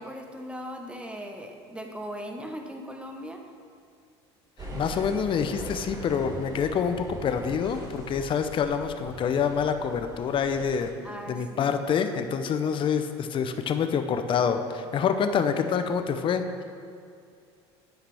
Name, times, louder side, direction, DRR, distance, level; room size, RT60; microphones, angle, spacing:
voice 1, 0.0-3.4 11.0-11.7, equal, 10° right, 4 dB, 1.0 m, -39 dB
voice 2, 4.6-10.9 11.3-16.6, left 6 dB, 40° left, 8 dB, 0.6 m, -27 dB
sound 1, 4.6-10.9, right 1 dB, 25° right, 1.7 m, -41 dB
9.8 x 5.8 x 3.4 m, 2.3 s
hypercardioid pair, 80°, 14 cm